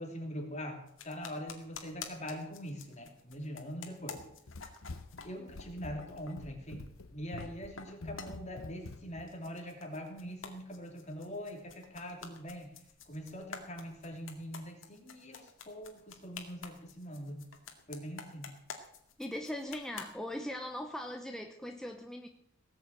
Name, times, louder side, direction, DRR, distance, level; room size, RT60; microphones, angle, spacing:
voice 1, 0.0-4.2 5.2-6.9 7.1-12.7 13.1-17.4 17.9-18.5, equal, 35° left, 3 dB, 3.1 m, -43 dB
sound 1, 0.9-5.7 6.0-6.4 7.0-7.5 7.8-9.0 9.3-20.1, left 5 dB, 70° left, 2.1 m, -49 dB
Run, 4.1-9.3, left 3 dB, 90° left, 0.9 m, -47 dB
voice 2, 19.2-22.3, left 1 dB, 5° left, 3 dB, 0.9 m, -40 dB
18.5 x 7.1 x 8.9 m, 0.72 s
head